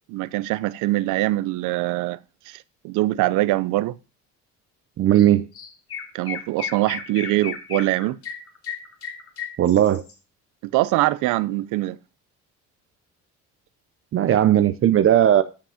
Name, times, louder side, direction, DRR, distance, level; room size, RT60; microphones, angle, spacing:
voice 1, 0.1-2.2 2.5-3.9 6.1-8.2 10.6-12.0, right 17 dB, 80° right, 0.7 m, -23 dB
voice 2, 5.0-5.5 9.6-10.0 14.1-15.4, right 11 dB, 45° right, 0.7 m, -17 dB
Chirp tweet, 5.1-5.3 5.5-10.1, left 7 dB, 50° left, 2.5 m, -34 dB
13.5 x 5.2 x 5.0 m
cardioid pair, 120°, 30 cm